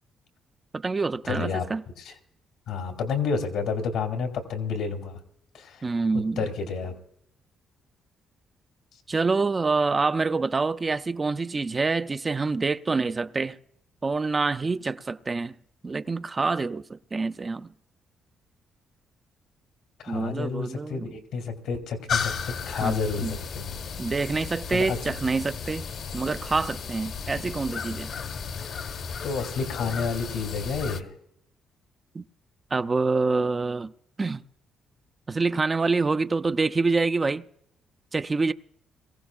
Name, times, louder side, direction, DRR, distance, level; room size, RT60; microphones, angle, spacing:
voice 1, 0.7-1.8 5.8-6.5 9.1-13.6 14.0-15.5 15.8-17.7 20.1-21.1 22.7-23.3 24.0-25.9 26.1-28.1 32.1-32.2 32.7-33.9 34.2-34.4 35.3-37.4 38.1-38.5, right 3 dB, 30° right, 0.5 m, -26 dB
voice 2, 1.3-1.6 2.0-2.1 2.7-5.2 5.5-5.8 6.4-7.0 20.0-23.7 24.7-25.0 29.2-31.1, left 5 dB, 80° left, 2.7 m, -30 dB
sound 1, 22.1-31.0, left 6 dB, 65° left, 1.3 m, -34 dB
22.5 x 15.5 x 2.4 m
cardioid pair, 90°, 0 cm